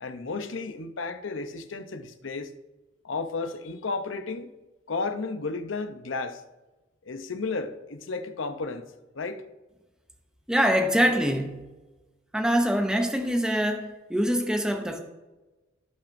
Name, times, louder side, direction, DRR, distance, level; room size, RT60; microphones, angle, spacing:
voice 1, 0.0-2.5 3.0-4.5 4.9-6.4 7.1-8.9 9.1-9.4, left 3 dB, 75° left, 0.7 m, -33 dB
voice 2, 10.5-11.6 12.3-13.8 14.1-15.0, equal, 5° right, 0.7 m, -24 dB
17.0 x 5.8 x 2.6 m
head